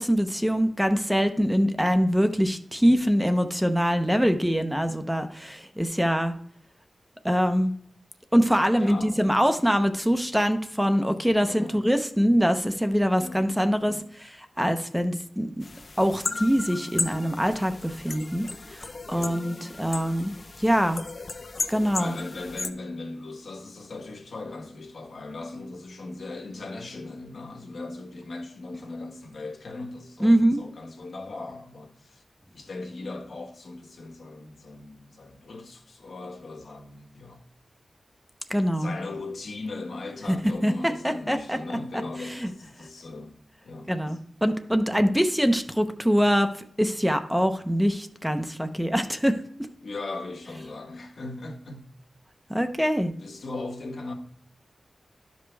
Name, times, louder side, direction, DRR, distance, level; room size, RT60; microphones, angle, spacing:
voice 1, 0.0-6.4 7.2-7.7 8.3-15.7 16.0-20.3 20.6-21.0 21.7-22.1 30.2-30.6 38.5-38.9 40.3-40.4 40.6-41.6 42.2-42.5 43.9-49.4 52.5-53.1, equal, 5° right, 0.7 m, -24 dB
voice 2, 8.7-9.3 11.5-11.8 13.1-13.5 13.8-14.1 19.1-19.4 22.0-32.2 32.5-37.4 38.8-43.3 43.6-43.9 49.8-51.9 53.2-54.1, left 2 dB, 75° left, 1.5 m, -38 dB
sound 1, 15.6-22.7, left 3 dB, 50° left, 0.7 m, -35 dB
12.0 x 5.2 x 3.4 m
wide cardioid pair, 70°, 0 cm